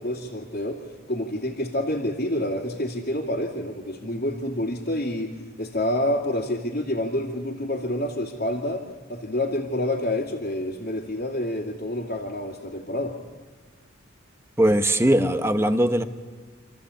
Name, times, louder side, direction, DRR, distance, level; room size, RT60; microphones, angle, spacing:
voice 1, 0.0-8.8 9.1-13.2, left 1 dB, 50° left, -5 dB, 2.5 m, -28 dB
voice 2, 14.6-16.0, right 1 dB, 10° right, 9 dB, 0.9 m, -20 dB
28.0 x 14.5 x 8.5 m, 1.4 s
head